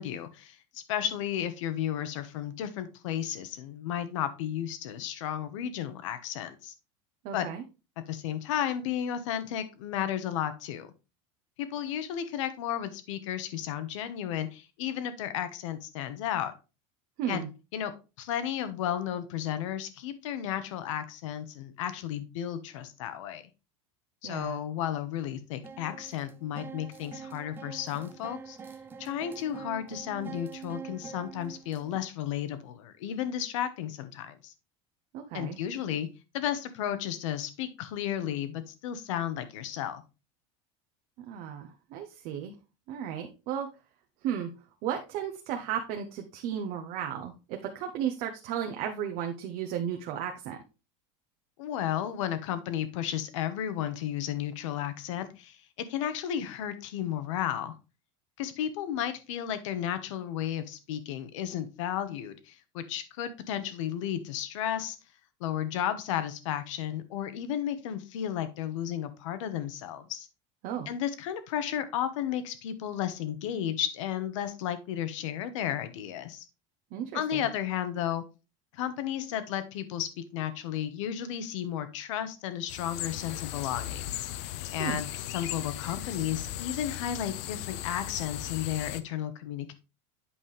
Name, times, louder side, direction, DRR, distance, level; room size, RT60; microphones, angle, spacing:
voice 1, 0.0-6.7 7.3-7.5 8.1-10.9 11.6-16.5 17.3-17.4 17.7-17.9 18.2-23.4 24.2-28.6 29.0-34.5 35.3-36.1 36.3-40.0 51.6-55.6 55.9-57.7 58.4-65.0 65.4-70.3 70.9-76.4 77.1-78.2 78.7-84.1 84.7-89.7, left 10 dB, 85° left, 11 dB, 1.2 m, -33 dB
voice 2, 7.2-7.6 17.2-17.5 24.2-24.6 35.1-35.6 41.3-42.5 42.9-43.7 44.2-44.5 44.8-50.6 70.6-70.9 76.9-77.4 84.8-85.0, right 9 dB, 45° right, 4 dB, 0.8 m, -34 dB
sound 1, 25.6-32.0, right 6 dB, 15° right, 0.4 m, -45 dB
sound 2, 82.7-89.0, left 13 dB, 65° left, 0.6 m, -37 dB
8.4 x 5.5 x 3.3 m, 0.29 s
supercardioid pair, 165°, 16 cm